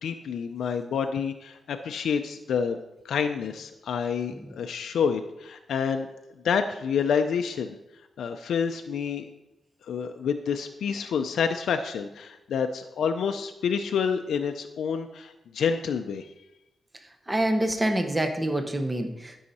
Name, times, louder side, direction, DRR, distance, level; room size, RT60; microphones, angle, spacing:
voice 1, 0.0-2.8 3.0-6.1 6.4-7.7 8.2-9.2 9.9-16.3, left 6 dB, 85° left, 6 dB, 0.5 m, -28 dB
voice 2, 17.3-19.5, right 1 dB, 15° right, 6 dB, 1.0 m, -27 dB
12.5 x 5.6 x 4.2 m, 0.95 s
cardioid pair, 95°, 0 cm